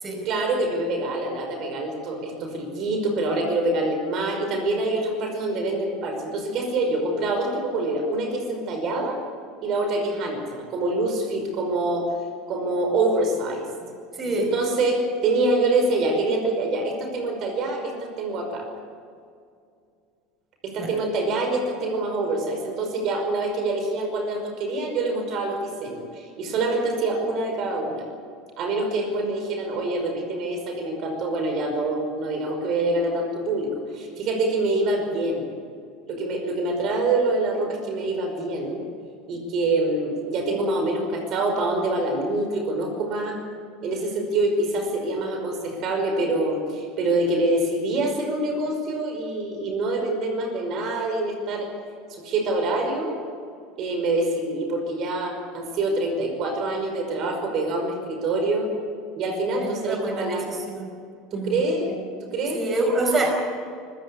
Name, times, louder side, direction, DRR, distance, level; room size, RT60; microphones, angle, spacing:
voice 1, 0.3-9.2 9.6-12.1 12.5-13.7 14.4-18.7 20.6-28.0 28.6-35.5 36.1-38.8 39.3-43.4 43.8-51.7 52.1-53.2 53.8-58.7 59.2-60.5 61.3-62.6, right 2 dB, 55° right, 4 dB, 5.3 m, -25 dB
voice 2, 14.2-14.5 20.8-20.9 59.6-60.9 61.3-61.6 62.5-63.3, right 2 dB, 30° right, 3 dB, 5.0 m, -26 dB
25.5 x 15.0 x 8.4 m, 2.3 s
hypercardioid pair, 85°, 0 cm